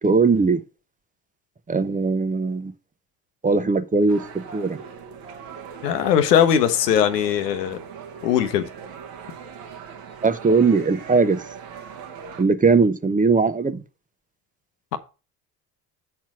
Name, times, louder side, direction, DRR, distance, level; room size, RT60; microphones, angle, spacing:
voice 1, 0.0-0.6 1.7-2.7 3.4-4.8 10.2-11.4 12.4-13.8, right 4 dB, 15° right, 0.8 m, -20 dB
sound 1, 4.1-12.4, right 7 dB, 70° right, 1.4 m, -40 dB
voice 2, 5.8-7.8 8.2-8.7 14.9-15.0, left 9 dB, 85° left, 0.9 m, -20 dB
7.8 x 4.3 x 6.0 m
hypercardioid pair, 55°, 47 cm